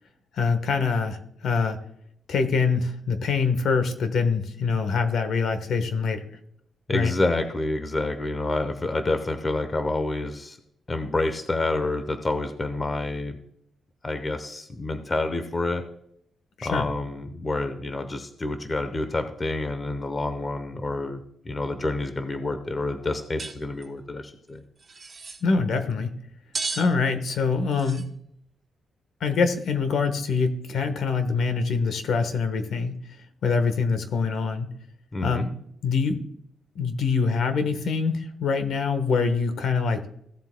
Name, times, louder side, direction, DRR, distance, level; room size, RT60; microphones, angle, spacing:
voice 1, 0.3-1.8 2.3-6.3 6.9-7.1 16.6-16.8 25.4-26.1 26.7-28.1 29.2-33.0 33.4-34.7 35.2-35.5 35.8-36.2 36.7-40.0, left 5 dB, 65° left, 9 dB, 1.2 m, -24 dB
voice 2, 6.9-10.6 10.9-13.4 14.0-15.8 16.6-24.6 35.1-35.4, left 2 dB, 20° left, 8 dB, 0.8 m, -28 dB
sound 1, 23.4-23.6 23.8-23.9 24.8-25.4 26.5-26.9 27.7-28.0, right 4 dB, 25° right, 1.6 m, -33 dB
16.0 x 7.8 x 2.2 m, 0.71 s
cardioid pair, 155°, 0 cm